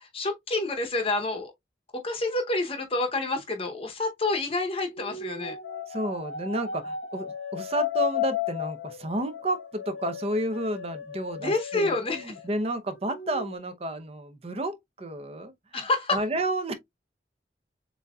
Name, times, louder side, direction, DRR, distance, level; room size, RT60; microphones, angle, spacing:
voice 1, 0.0-1.5 2.0-5.6 11.4-12.3 15.7-16.2, left 2 dB, 35° left, 0.8 m, -28 dB
sound 1, 4.9-12.6 13.0-13.6, left 9 dB, 90° left, 0.9 m, -34 dB
voice 2, 5.9-15.8 16.1-16.7, right 1 dB, 35° right, 0.7 m, -31 dB
7.1 x 2.7 x 2.3 m
head